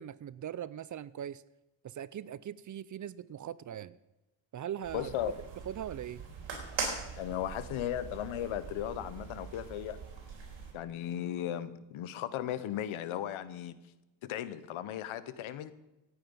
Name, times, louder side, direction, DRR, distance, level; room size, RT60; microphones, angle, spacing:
voice 1, 0.0-1.4 1.8-4.0 4.5-5.1 5.7-6.2, right 10 dB, 40° right, 19 dB, 0.4 m, -40 dB
sound 1, 4.8-10.7, right 5 dB, 65° right, 4.3 m, -42 dB
voice 2, 4.9-5.4 7.2-10.0 10.7-13.7 14.2-15.7, left 11 dB, 80° left, 15 dB, 1.0 m, -36 dB
17.0 x 9.1 x 5.5 m, 1.0 s
cardioid pair, 115°, 47 cm